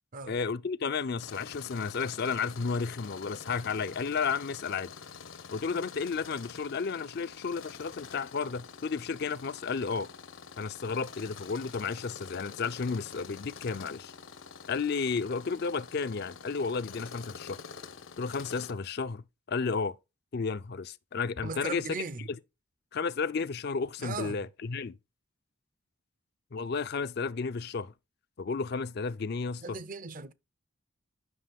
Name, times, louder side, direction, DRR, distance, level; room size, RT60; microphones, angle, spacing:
voice 1, 0.2-4.9 5.5-10.1 10.6-14.1 14.7-17.6 18.2-20.0 20.3-21.8 22.9-24.9 26.5-27.9 28.4-29.8, left 5 dB, 55° left, 0.5 m, -32 dB
Tools, 1.2-18.7, left 6 dB, 80° left, 1.1 m, -47 dB
voice 2, 21.4-22.3 24.0-24.5 29.6-30.3, right 4 dB, 40° right, 0.6 m, -38 dB
9.7 x 6.1 x 3.5 m
head